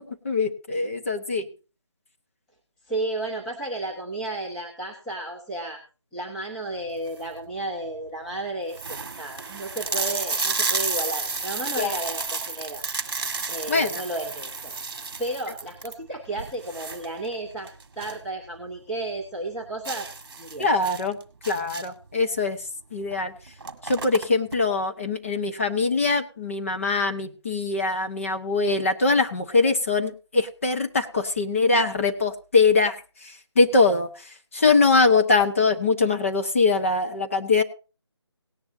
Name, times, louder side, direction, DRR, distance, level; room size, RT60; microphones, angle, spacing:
voice 1, 0.2-1.5 11.8-11.9 13.7-14.0 20.6-21.2 21.5-22.6 22.9-23.3 23.8-37.6, left 3 dB, 30° left, 4 dB, 1.0 m, -22 dB
voice 2, 2.9-5.8 6.1-12.8 13.5-14.7 15.2-20.1 20.4-20.7, right 2 dB, 5° left, -5 dB, 0.8 m, -33 dB
sound 1, 6.9-7.4 8.0-8.1 8.3-8.4 8.7-18.3 18.6-18.7 19.1-19.2 19.9-22.1 23.0-23.2 23.4-24.6, right 4 dB, 45° right, 1.5 m, -31 dB
18.0 x 10.5 x 2.7 m, 0.32 s
figure-of-eight pair, 170°, 15 cm